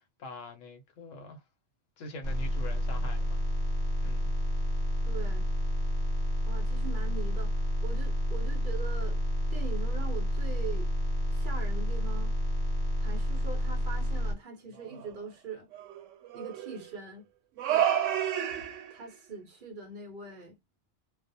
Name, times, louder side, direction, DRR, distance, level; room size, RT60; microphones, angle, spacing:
voice 1, 0.0-1.4 2.0-3.4 4.0-4.3, left 2 dB, 80° left, 1.0 m, -44 dB
sound 1, 2.2-14.3, equal, 20° left, 1.1 m, -29 dB
voice 2, 5.0-5.5 6.5-9.2 9.5-10.9 11.3-12.4 13.0-15.7 16.3-17.2 17.7-17.9 18.9-20.6, right 4 dB, 55° right, 0.6 m, -42 dB
sound 2, 14.8-15.1 15.7-16.8 17.6-19.0, right 10 dB, 80° right, 0.9 m, -30 dB
2.3 x 2.0 x 2.6 m
omnidirectional pair, 1.3 m